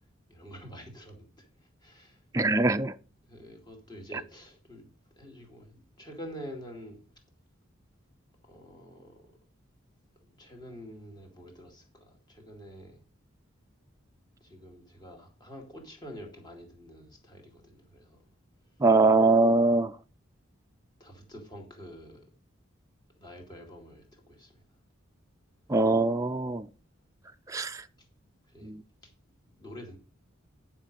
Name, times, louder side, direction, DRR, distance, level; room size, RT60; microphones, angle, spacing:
voice 1, 0.3-1.5 1.8-2.2 3.3-4.9 5.2-7.0 8.4-9.3 10.2-13.0 14.4-18.2 21.0-22.2 23.2-24.5 28.5-28.7 29.0-29.1 29.6-30.0, equal, 20° left, 2.3 m, -47 dB
voice 2, 2.3-2.9 18.8-19.9 25.7-26.6 27.5-27.8 28.6-28.8, right 3 dB, 15° right, 0.3 m, -23 dB
9.9 x 5.7 x 5.2 m
head